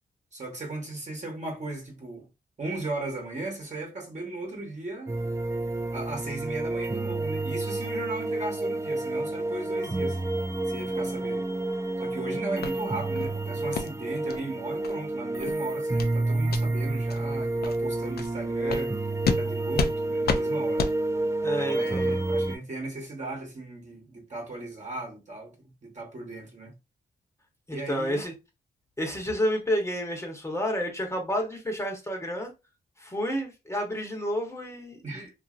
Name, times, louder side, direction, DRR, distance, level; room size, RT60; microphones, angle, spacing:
voice 1, 0.3-2.3 2.6-5.2 5.9-10.2 10.7-11.4 12.0-19.0 19.4-20.9 21.6-26.7 27.7-28.2 35.0-35.3, right 2 dB, 45° right, 1.2 m, -37 dB
sound 1, 5.1-22.6, right 2 dB, 15° right, 0.4 m, -29 dB
sound 2, 12.6-12.7 13.1-13.3 13.7-13.9 14.3-14.4 14.8-14.9 15.3-15.5 16.0-16.1 16.5-16.6 17.1-17.2 17.6-17.8 18.2-18.3 18.7-18.8 19.2-19.4 19.7-19.9 20.2-20.4 20.8-20.9, left 5 dB, 65° left, 0.5 m, -29 dB
voice 2, 21.4-22.1 27.7-28.3 29.0-32.5 33.0-35.3, equal, 15° left, 1.0 m, -30 dB
2.7 x 2.7 x 2.4 m
cardioid pair, 70°, 18 cm